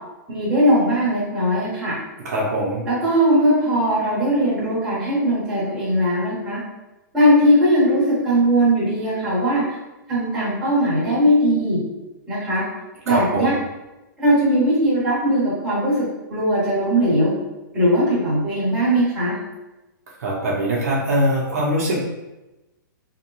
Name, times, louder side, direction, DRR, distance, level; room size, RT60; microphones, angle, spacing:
voice 1, 0.3-1.9 2.8-6.6 7.1-9.6 10.1-11.8 12.3-12.6 13.0-13.5 14.2-16.0 16.3-17.3 17.7-19.4, equal, 5° right, -11 dB, 0.8 m, -19 dB
voice 2, 2.2-2.8 13.1-13.5 20.2-22.0, equal, 50° right, -4 dB, 0.6 m, -22 dB
2.6 x 2.1 x 2.9 m, 1.0 s
hypercardioid pair, 175°, 11 cm